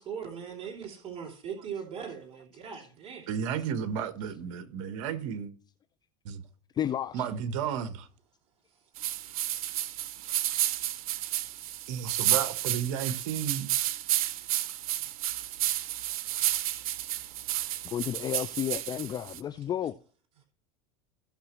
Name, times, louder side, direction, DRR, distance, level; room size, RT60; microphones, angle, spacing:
voice 1, 0.0-3.3 8.7-8.8 11.4-11.8, right 7 dB, 35° right, 2.9 m, -40 dB
voice 2, 3.3-5.5 6.2-6.4 7.1-8.1 11.9-14.0, right 8 dB, 70° right, 1.2 m, -33 dB
voice 3, 6.7-7.3 17.9-20.0, left 10 dB, 25° left, 0.4 m, -32 dB
sound 1, 9.0-19.4, right 13 dB, 90° right, 0.7 m, -31 dB
16.5 x 5.9 x 3.0 m
supercardioid pair, 120°, 18 cm